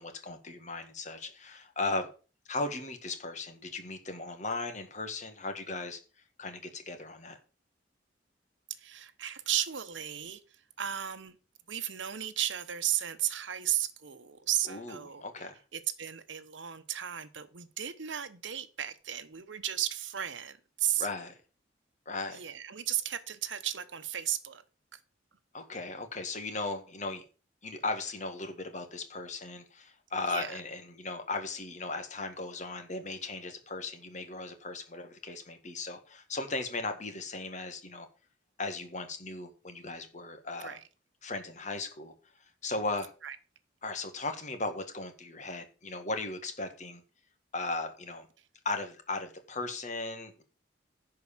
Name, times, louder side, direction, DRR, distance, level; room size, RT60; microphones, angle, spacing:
voice 1, 0.0-2.1 2.5-6.0 6.4-7.4 14.7-15.6 21.0-21.4 22.1-22.4 25.5-27.2 27.6-38.1 38.6-40.8 41.2-42.1 42.6-43.1 43.8-47.0 47.5-48.3 48.7-50.4, left 3 dB, 40° left, 1.8 m, -37 dB
voice 2, 8.8-11.4 11.7-15.2 15.7-21.1 22.3-24.6 24.9-25.0 30.3-30.6 40.6-40.8 43.2-43.4, right 11 dB, 80° right, 1.0 m, -34 dB
10.5 x 4.8 x 7.2 m
head